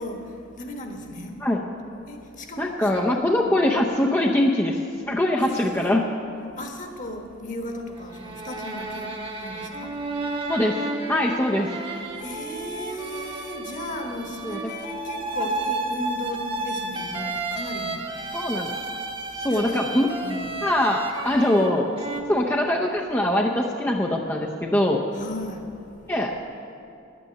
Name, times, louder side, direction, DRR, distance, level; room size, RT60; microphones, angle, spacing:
voice 1, 0.0-1.4 2.1-3.0 3.4-3.5 5.4-5.9 6.6-10.0 12.2-18.0 19.4-19.8 20.2-20.5 25.1-25.7, left 1 dB, 40° left, 3 dB, 1.4 m, -36 dB
voice 2, 2.6-4.8 5.1-6.0 10.5-10.8 11.1-11.7 14.4-14.6 18.3-18.7 19.4-20.1 20.6-21.9 22.3-25.0 26.1-26.4, left 1 dB, 10° left, -1 dB, 0.6 m, -22 dB
sound 1, 8.0-22.2, right 2 dB, 25° right, 1.1 m, -32 dB
10.5 x 9.3 x 8.8 m, 2.6 s
head